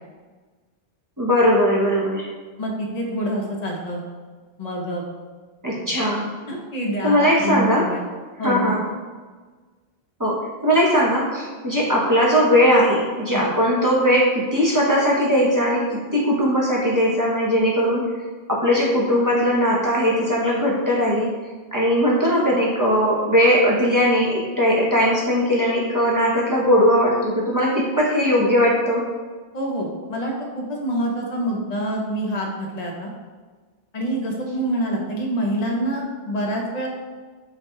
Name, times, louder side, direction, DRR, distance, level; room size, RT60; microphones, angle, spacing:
voice 1, 1.2-2.3 5.6-6.3 7.0-7.9 8.4-8.8 10.2-18.1 18.5-21.3 21.7-29.0, equal, 25° right, -5 dB, 0.6 m, -19 dB
voice 2, 2.6-4.0 4.6-5.0 6.5-8.0 8.4-8.7 13.3-13.4 29.5-33.1 33.9-36.9, right 1 dB, 45° left, -1 dB, 0.8 m, -26 dB
3.9 x 2.2 x 4.5 m, 1.4 s
omnidirectional pair, 1.1 m